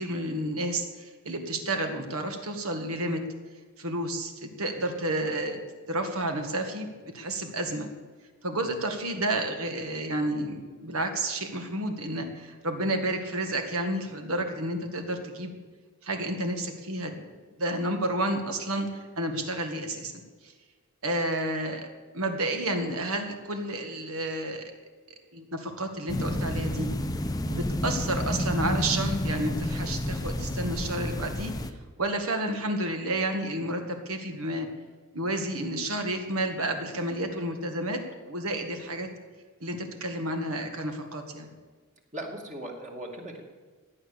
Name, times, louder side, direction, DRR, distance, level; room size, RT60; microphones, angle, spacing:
voice 1, 0.0-3.2 3.8-5.6 5.9-7.9 8.4-15.5 16.0-17.2 17.6-20.5 21.0-24.7 25.3-26.9 27.5-31.5 32.0-34.7 35.1-39.1 39.6-41.5, right 1 dB, 70° right, 5 dB, 1.9 m, -31 dB
sound 1, 26.1-31.7, left 1 dB, 15° left, 0.8 m, -30 dB
voice 2, 42.1-43.4, right 1 dB, 35° right, 1 dB, 2.3 m, -38 dB
16.5 x 10.0 x 7.0 m, 1.4 s
head